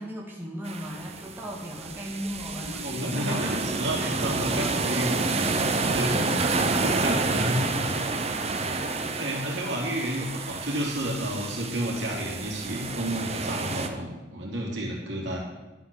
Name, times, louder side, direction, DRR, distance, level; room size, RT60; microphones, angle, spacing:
voice 1, 0.0-3.4 5.5-8.1 8.7-8.9, equal, 10° right, -3 dB, 1.9 m, -38 dB
sound 1, 0.6-13.9, right 3 dB, 35° right, 1.0 m, -29 dB
voice 2, 2.6-5.3 5.7-6.1 6.4-6.5 6.8-7.6 9.2-15.4, equal, 65° right, -2 dB, 3.6 m, -31 dB
11.5 x 8.6 x 7.2 m, 1.1 s
head